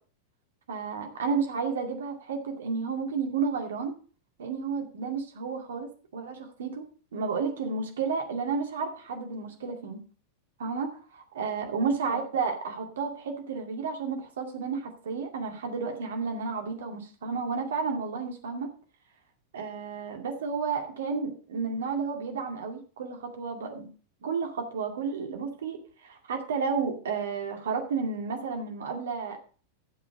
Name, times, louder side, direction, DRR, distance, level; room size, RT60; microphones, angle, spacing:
voice 1, 0.7-3.9 4.4-6.8 7.1-10.0 10.6-18.7 19.5-23.9 24.2-29.4, right 5 dB, 65° right, 3 dB, 2.3 m, -32 dB
11.0 x 7.5 x 5.2 m, 0.40 s
figure-of-eight pair, 90°, 0 cm